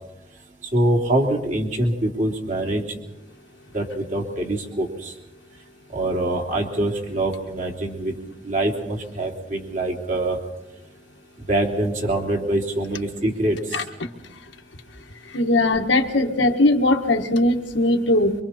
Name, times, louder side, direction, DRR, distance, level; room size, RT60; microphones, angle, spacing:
voice 1, 0.7-2.8 3.7-5.1 5.9-8.1 8.4-10.4 11.5-13.8, right 1 dB, 45° right, 1 dB, 3.0 m, -24 dB
voice 2, 15.3-18.3, left 2 dB, 80° left, 4 dB, 1.6 m, -19 dB
25.0 x 24.0 x 4.3 m, 0.97 s
head